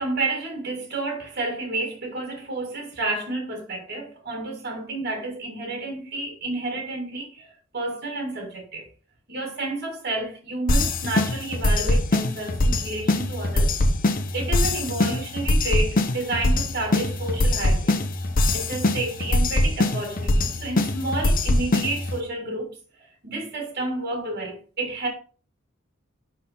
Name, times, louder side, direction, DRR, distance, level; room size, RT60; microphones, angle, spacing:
voice 1, 0.0-8.9 9.3-13.7 14.3-18.0 18.5-22.7 23.2-25.1, right 2 dB, 50° right, 1.8 m, -30 dB
sound 1, 10.7-22.2, left 1 dB, 45° left, 0.8 m, -23 dB
11.0 x 3.8 x 4.2 m
head